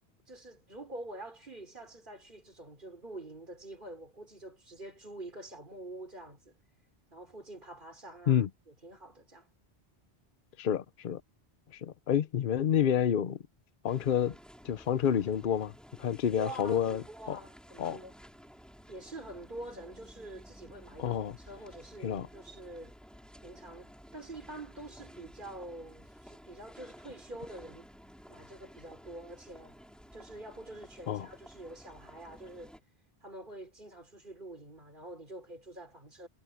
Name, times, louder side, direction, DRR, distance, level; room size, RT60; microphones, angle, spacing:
voice 1, 0.3-6.6 7.1-9.5 16.3-18.2 18.9-22.9 23.4-27.9 28.3-29.8 30.1-32.8 33.2-36.3, right 1 dB, 50° right, 5.2 m, -46 dB
voice 2, 10.6-11.2 11.7-13.4 13.8-14.4 14.6-15.7 16.0-17.4 17.8-18.0 21.0-21.3 22.0-22.3 31.1-31.3, left 9 dB, 55° left, 0.9 m, -29 dB
sound 1, 13.9-32.8, equal, ahead, 6.5 m, -54 dB
omnidirectional pair, 1.1 m